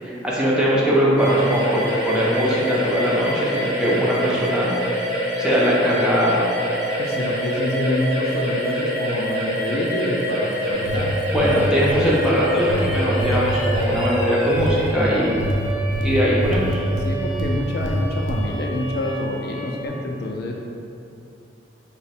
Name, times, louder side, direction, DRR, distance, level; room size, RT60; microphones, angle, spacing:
voice 1, 0.0-4.7 5.4-6.4 11.3-15.4 16.0-16.8, equal, 5° right, -6 dB, 0.4 m, -20 dB
sound 1, 1.2-19.9, equal, 65° right, 1.0 m, -26 dB
voice 2, 7.0-11.1 17.0-20.5, left 1 dB, 55° left, 0 dB, 0.3 m, -26 dB
sound 2, 10.9-12.1 12.7-14.1 14.6-14.9 15.4-17.5 17.8-18.4, equal, 90° right, 0.5 m, -25 dB
3.3 x 2.0 x 4.1 m, 2.6 s
head